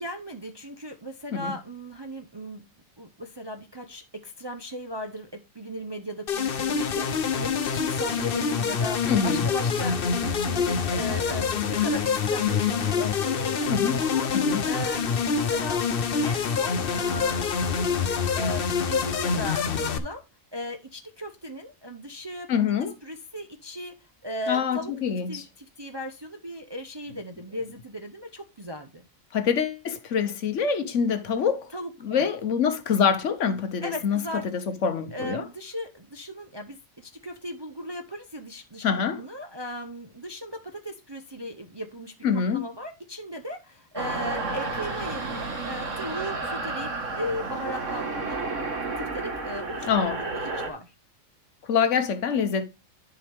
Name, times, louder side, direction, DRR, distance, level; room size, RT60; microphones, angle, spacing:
voice 1, 0.0-2.7 3.0-15.1 15.5-15.8 16.2-18.1 18.3-20.2 20.5-22.5 23.0-23.9 24.2-24.9 25.3-29.0 31.7-32.3 33.8-34.4 35.1-38.8 39.2-42.1 42.5-48.4 49.0-50.9 51.9-52.0, equal, 25° right, 0.6 m, -37 dB
sound 1, 6.3-20.0, left 6 dB, 50° left, 0.9 m, -26 dB
voice 2, 9.1-9.5 13.7-14.0 14.3-14.6 22.5-22.9 24.5-25.4 29.3-31.7 32.0-35.5 38.8-39.2 42.2-42.7 49.9-50.2 51.6-52.6, left 6 dB, 65° left, 1.2 m, -25 dB
sound 2, 44.0-50.7, right 3 dB, 65° right, 1.8 m, -31 dB
10.5 x 4.9 x 3.4 m
omnidirectional pair, 1.4 m